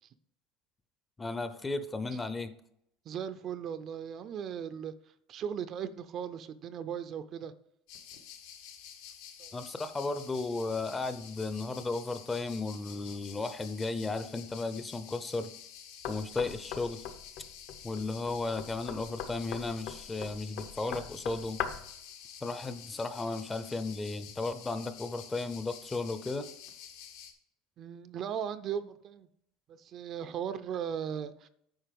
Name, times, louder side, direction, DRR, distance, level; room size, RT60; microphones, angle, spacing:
voice 1, 1.2-2.5 9.5-15.5 16.1-17.0 17.8-21.6 22.4-26.5, left 3 dB, 15° left, 11 dB, 0.6 m, -35 dB
voice 2, 3.1-4.9 5.3-7.5 9.4-9.5 27.8-29.3 29.7-31.5, right 8 dB, 35° right, 12 dB, 0.5 m, -37 dB
sound 1, 7.9-27.3, left 8 dB, 80° left, 1.6 m, -50 dB
Knock, 16.0-22.0, left 8 dB, 60° left, 0.9 m, -41 dB
9.0 x 5.5 x 5.2 m, 0.72 s
cardioid pair, 150°, 0 cm